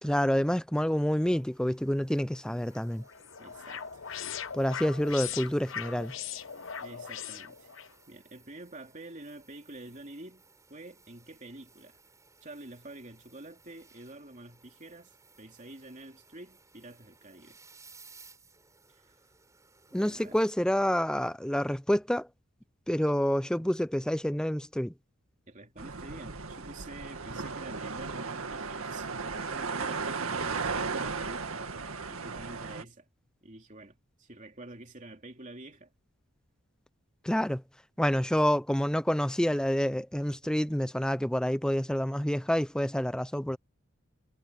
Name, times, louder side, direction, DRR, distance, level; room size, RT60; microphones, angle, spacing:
voice 1, 0.0-3.0 4.5-6.1 19.9-22.3 22.9-24.9 37.2-37.6 38.0-43.6, equal, 5° left, 0.5 m, -28 dB
sound 1, 1.1-20.5, right 4 dB, 15° right, 7.1 m, -60 dB
sound 2, 2.7-7.9, left 8 dB, 65° left, 1.0 m, -40 dB
voice 2, 3.4-4.0 6.8-7.7 8.1-10.4 10.7-12.0 12.4-17.6 18.9-19.2 19.9-20.4 25.5-33.1 33.4-35.9, right 2 dB, 35° right, 3.2 m, -48 dB
sound 3, 25.8-32.8, right 4 dB, 85° right, 2.0 m, -35 dB
head